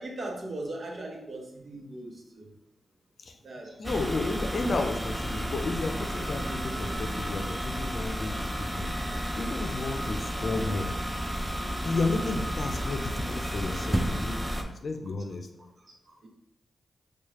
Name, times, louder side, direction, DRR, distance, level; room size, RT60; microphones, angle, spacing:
voice 1, 0.0-2.5 3.4-4.0 14.9-15.1 16.1-16.3, right 2 dB, 60° right, 0 dB, 1.0 m, -39 dB
voice 2, 3.8-8.9 9.4-10.9 11.8-15.7, left 3 dB, 60° left, 5 dB, 0.5 m, -32 dB
sound 1, 3.8-14.6, equal, 15° right, 0.5 m, -32 dB
4.6 x 2.4 x 2.9 m, 0.83 s
supercardioid pair, 45°, 0 cm